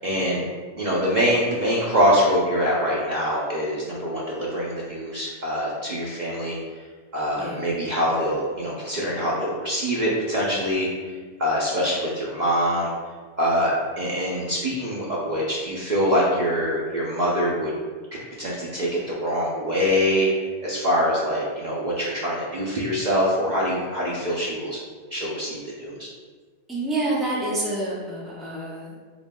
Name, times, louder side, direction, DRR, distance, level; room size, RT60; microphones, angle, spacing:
voice 1, 0.0-0.4 0.7-6.6 7.1-10.9 11.4-12.9 13.4-17.7 18.1-20.3 20.6-24.8 25.1-26.1, equal, 50° right, -6 dB, 0.6 m, -24 dB
voice 2, 26.7-29.0, right 2 dB, ahead, -6 dB, 0.7 m, -28 dB
6.8 x 2.4 x 2.2 m, 1.5 s
omnidirectional pair, 1.2 m